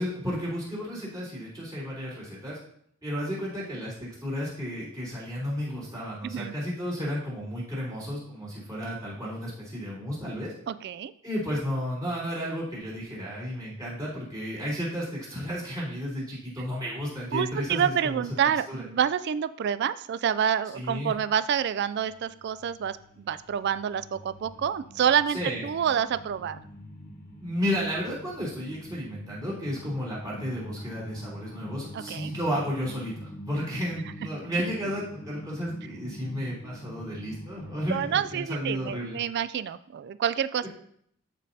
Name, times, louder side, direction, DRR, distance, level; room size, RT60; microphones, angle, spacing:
voice 1, 0.0-2.6 3.0-10.5 11.2-18.2 18.7-18.8 20.7-21.1 25.3-25.6 27.4-39.2 40.6-40.7, equal, 20° right, -7 dB, 3.4 m, -33 dB
voice 2, 6.2-6.5 10.7-11.1 17.3-26.6 31.9-32.3 37.9-40.6, right 8 dB, 50° right, 14 dB, 0.3 m, -28 dB
sound 1, 21.6-38.3, equal, 40° left, 1.6 m, -45 dB
13.0 x 5.2 x 2.8 m, 0.67 s
head